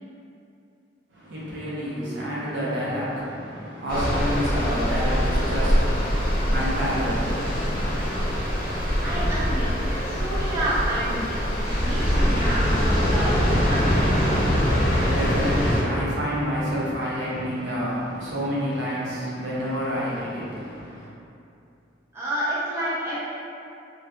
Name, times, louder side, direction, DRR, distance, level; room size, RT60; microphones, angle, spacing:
voice 1, 1.1-8.0 14.8-21.1, equal, 75° right, -8 dB, 0.7 m, -29 dB
sound 1, 3.9-15.8, equal, 50° left, 0.6 m, -23 dB
voice 2, 9.0-14.4 22.1-23.2, right 1 dB, 15° right, -10 dB, 0.4 m, -30 dB
2.6 x 2.3 x 2.2 m, 2.7 s
head